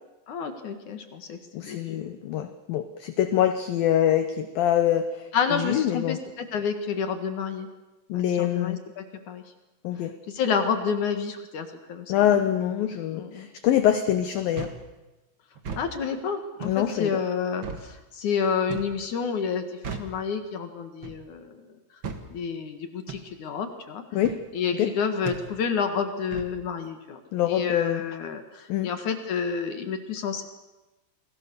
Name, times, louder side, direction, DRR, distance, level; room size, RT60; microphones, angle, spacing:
voice 1, 0.3-2.1 5.3-7.7 8.1-9.4 10.3-12.3 13.1-13.5 15.8-21.7 22.3-24.0 24.5-27.2 27.5-30.4, left 6 dB, 55° left, 7 dB, 2.4 m, -29 dB
voice 2, 1.5-6.2 8.1-8.8 9.8-10.1 12.1-14.7 16.6-17.2 24.1-24.4 24.7-24.9 27.3-28.0 28.7-28.9, left 11 dB, 70° left, 9 dB, 2.3 m, -25 dB
sound 1, 14.5-14.8 15.5-15.9 16.6-16.8 17.6-17.9 18.7-19.0 19.8-20.2 21.0-21.3 22.0-22.3 23.1-23.3 24.2-24.4 25.2-25.5 26.3-26.5, right 5 dB, 60° right, 1.2 m, -36 dB
29.0 x 22.0 x 6.9 m, 1.1 s
omnidirectional pair, 5.3 m